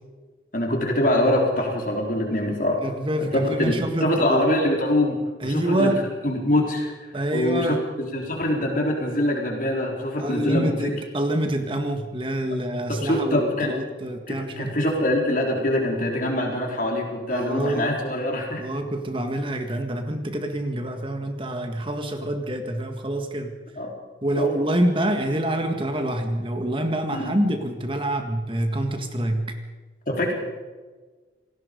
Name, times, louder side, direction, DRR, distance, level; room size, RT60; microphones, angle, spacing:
voice 1, 0.5-2.8 3.2-5.9 6.2-6.9 7.3-10.9 13.0-13.7 14.3-18.6 23.8-23.9 24.4-24.5 27.1-27.3 30.1-30.3, left 1 dB, 45° left, 1 dB, 4.0 m, -24 dB
voice 2, 2.8-4.6 5.4-6.1 7.1-7.8 10.2-14.9 17.3-17.9 18.6-23.5 24.2-29.5, right 1 dB, 25° right, 5 dB, 1.8 m, -26 dB
28.0 x 18.5 x 5.3 m, 1.3 s
head